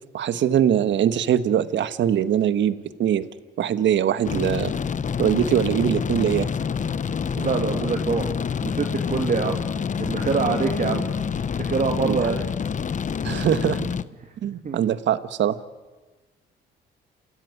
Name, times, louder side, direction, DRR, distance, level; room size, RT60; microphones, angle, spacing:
voice 1, 0.1-3.3 3.6-4.7 5.2-6.5 12.0-12.3 13.2-13.9 14.4-15.5, right 10 dB, 70° right, 13 dB, 1.4 m, -22 dB
sound 1, 4.3-14.0, left 6 dB, 40° left, 0.9 m, -27 dB
voice 2, 7.3-8.3 8.6-9.6 10.0-11.1 11.7-12.5 14.6-14.8, right 5 dB, 45° right, 3 dB, 2.4 m, -25 dB
28.5 x 16.5 x 9.5 m, 1.2 s
cardioid pair, 90°, 20 cm